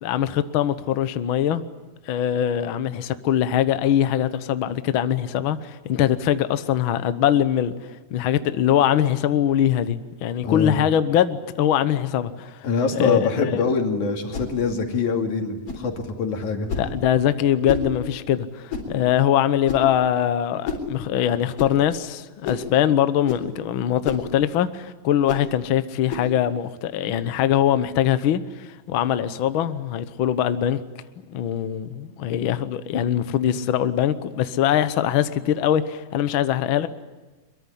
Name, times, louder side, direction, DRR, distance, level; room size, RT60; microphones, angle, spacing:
voice 1, 0.0-1.6 2.1-7.7 8.1-12.7 12.9-13.7 16.8-30.8 31.3-36.9, left 10 dB, 85° left, 1.1 m, -22 dB
voice 2, 10.4-10.8 12.6-16.7, left 4 dB, 65° left, 3.8 m, -24 dB
sound 1, 14.3-14.5 15.7-15.9 16.7-16.9 17.7-17.9 18.7-18.9 19.7-19.9 20.6-20.9 21.6-21.7 22.4-22.7 23.2-23.5 24.0-24.3 25.3-25.5 26.1-26.3, left 5 dB, 45° left, 4.7 m, -29 dB
23.5 x 22.5 x 9.9 m
omnidirectional pair, 3.8 m